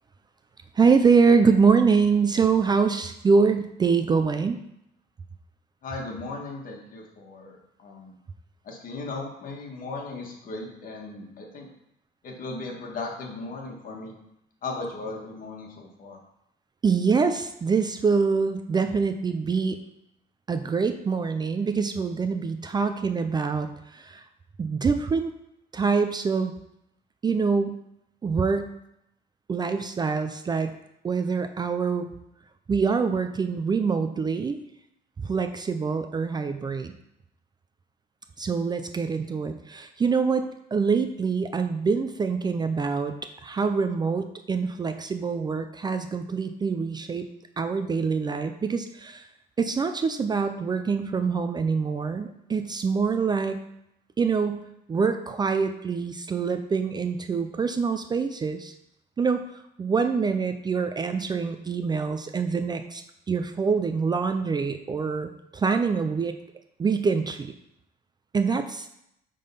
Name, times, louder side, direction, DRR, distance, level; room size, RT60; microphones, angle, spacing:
voice 1, 0.7-4.6 16.8-19.8 20.5-24.2 24.6-25.3 25.7-26.5 27.2-27.7 28.2-28.7 29.5-30.7 31.0-32.1 32.7-34.6 35.2-36.9 38.4-47.3 47.6-49.3 49.6-53.6 54.2-54.6 54.9-58.7 59.2-59.4 59.8-66.3 66.8-67.5 68.3-68.9, right 5 dB, 25° right, 8 dB, 0.4 m, -25 dB
voice 2, 5.8-8.1 8.6-11.7 12.2-14.2 14.6-16.2, left 3 dB, 50° left, 0 dB, 1.8 m, -37 dB
8.8 x 3.8 x 5.6 m, 0.80 s
cardioid pair, 140°, 18 cm